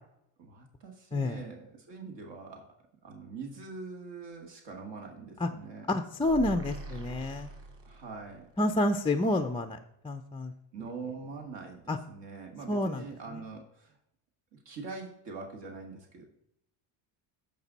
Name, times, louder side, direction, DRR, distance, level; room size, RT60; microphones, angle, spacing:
voice 1, 0.4-2.7 3.0-5.9 7.8-8.5 10.7-14.0 14.5-16.2, right 4 dB, 55° right, 2 dB, 2.2 m, -43 dB
voice 2, 5.9-7.5 8.6-9.8 10.0-10.5 11.9-12.0 12.7-13.1, left 1 dB, 10° left, 8 dB, 0.4 m, -29 dB
sound 1, 6.2-8.4, right 2 dB, 25° right, 3.6 m, -42 dB
13.5 x 5.3 x 4.0 m, 0.78 s
supercardioid pair, 95°, 49 cm